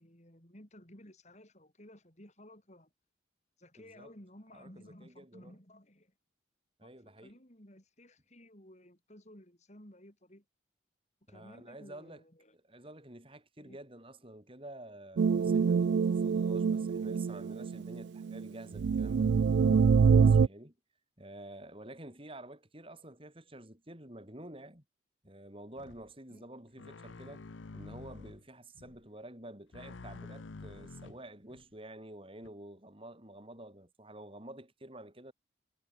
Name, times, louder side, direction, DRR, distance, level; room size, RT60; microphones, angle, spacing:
voice 1, 0.0-2.9 3.6-6.1 6.8-10.4 11.3-12.8 13.6-13.8 26.3-26.5, left 1 dB, 40° left, 5.9 m, -56 dB
voice 2, 3.8-4.1 4.5-5.6 6.8-7.4 11.3-12.2 12.6-20.7 21.2-24.8 25.2-27.4 27.7-35.3, right 1 dB, 30° right, 4.7 m, -50 dB
sound 1, 15.2-18.5 18.7-20.5, right 6 dB, 65° right, 0.3 m, -25 dB
sound 2, 25.8-26.1 26.8-28.4 28.7-29.0 29.7-31.6 32.4-32.5, left 3 dB, 85° left, 0.8 m, -48 dB
head